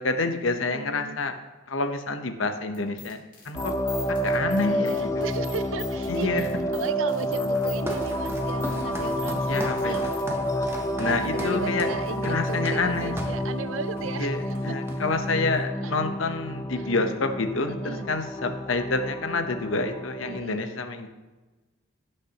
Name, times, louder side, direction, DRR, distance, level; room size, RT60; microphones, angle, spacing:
voice 1, 0.0-1.3 1.7-3.2 3.4-3.7 4.1-5.1 6.1-6.4 9.5-10.1 11.0-11.9 12.2-13.1 14.2-21.1, left 3 dB, 65° left, 7 dB, 0.9 m, -28 dB
voice 2, 0.7-1.2 4.7-6.5 6.7-10.1 11.0-14.4 14.7-14.8 15.8-15.9 16.7-16.9 17.7-18.1 20.3-20.6, right 5 dB, 70° right, 13 dB, 0.5 m, -36 dB
sound 1, 2.7-10.2, left 6 dB, 40° left, 2.8 m, -44 dB
sound 2, 3.5-20.4, equal, 15° left, 0.4 m, -29 dB
Walk footsteps, 7.5-13.5 14.0-14.2 14.5-15.3, right 1 dB, 10° right, 0.8 m, -38 dB
17.0 x 6.6 x 3.0 m, 1.2 s
head